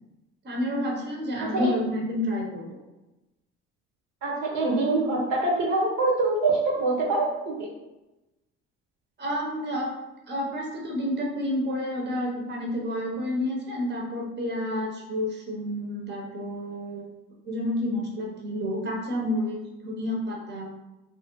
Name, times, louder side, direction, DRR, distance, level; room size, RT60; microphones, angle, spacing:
voice 1, 0.4-2.8 9.2-9.9 10.3-17.1 17.4-20.7, left 1 dB, 30° right, -2 dB, 0.9 m, -30 dB
voice 2, 4.2-7.3 7.6-7.7, right 2 dB, 55° right, -2 dB, 0.9 m, -24 dB
2.9 x 2.5 x 3.0 m, 1.0 s
hypercardioid pair, 65°, 34 cm